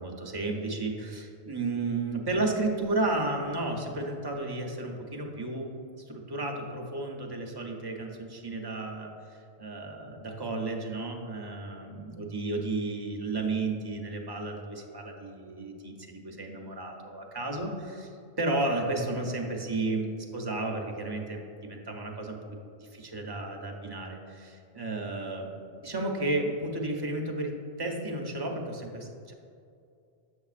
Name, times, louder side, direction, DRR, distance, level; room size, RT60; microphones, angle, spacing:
voice 1, 0.0-5.7 6.1-9.1 9.6-18.1 18.4-29.3, right 2 dB, 30° right, 1 dB, 0.6 m, -33 dB
7.0 x 6.7 x 2.4 m, 2.4 s
omnidirectional pair, 1.0 m